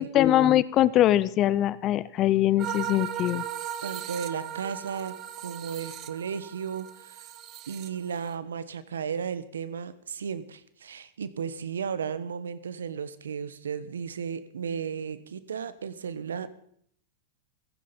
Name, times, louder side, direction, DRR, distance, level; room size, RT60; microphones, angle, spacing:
voice 1, 0.0-3.4, left 13 dB, 40° left, 19 dB, 0.6 m, -22 dB
sound 1, 2.6-8.3, right 10 dB, 40° right, 1.1 m, -37 dB
voice 2, 3.8-7.3 7.7-16.5, right 7 dB, 90° right, 15 dB, 1.1 m, -34 dB
15.5 x 14.5 x 5.2 m, 0.66 s
hypercardioid pair, 115°, 0 cm